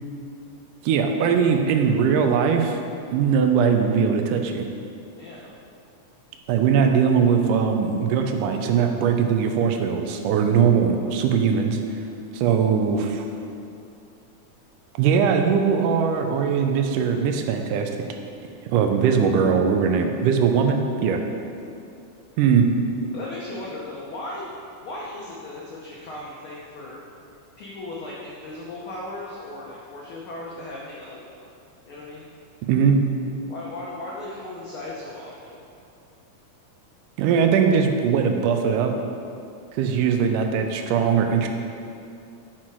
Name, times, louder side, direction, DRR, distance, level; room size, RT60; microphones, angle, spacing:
voice 1, 0.8-2.8 3.1-4.7 6.5-11.8 12.3-13.3 15.0-17.9 18.7-21.2 22.4-22.7 32.7-33.1 37.2-38.9 39.7-41.5, right 6 dB, 85° right, 5 dB, 2.2 m, -20 dB
voice 2, 5.2-5.5 10.5-10.6 23.1-24.5 24.8-27.0 27.6-31.4 31.9-32.2 33.5-35.6, left 2 dB, 80° left, -4 dB, 1.2 m, -37 dB
8.9 x 6.0 x 4.5 m, 2.5 s
omnidirectional pair, 3.6 m